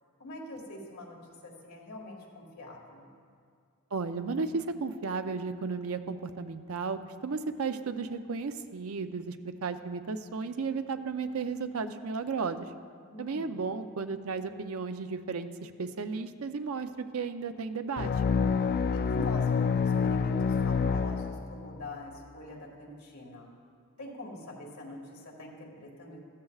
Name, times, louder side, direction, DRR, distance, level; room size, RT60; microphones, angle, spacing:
voice 1, 0.2-1.2 1.4-3.1 13.1-13.6 18.9-23.5 24.0-26.2, left 1 dB, 85° left, -2 dB, 1.9 m, -44 dB
voice 2, 3.9-12.7 13.2-18.1, right 4 dB, 75° right, 9 dB, 0.6 m, -34 dB
sound 1, 18.0-21.8, left 5 dB, 45° left, 0.4 m, -27 dB
14.0 x 14.0 x 2.4 m, 2.2 s
head